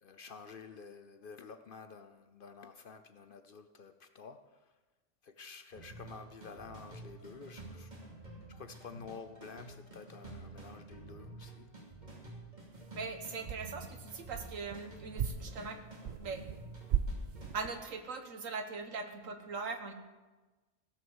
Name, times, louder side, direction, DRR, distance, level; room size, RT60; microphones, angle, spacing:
voice 1, 0.0-4.7 5.2-7.9 8.2-11.8, left 5 dB, 50° left, 0.7 m, -50 dB
sound 1, 5.7-17.5, right 2 dB, 35° right, 2.9 m, -50 dB
sound 2, 12.7-13.1 13.4-14.8 15.1-16.6 16.9-17.8, right 8 dB, 60° right, 0.8 m, -37 dB
voice 2, 12.9-15.8 16.2-16.4 17.5-19.9, right 4 dB, 80° right, 1.7 m, -40 dB
16.5 x 6.2 x 7.2 m
omnidirectional pair, 1.3 m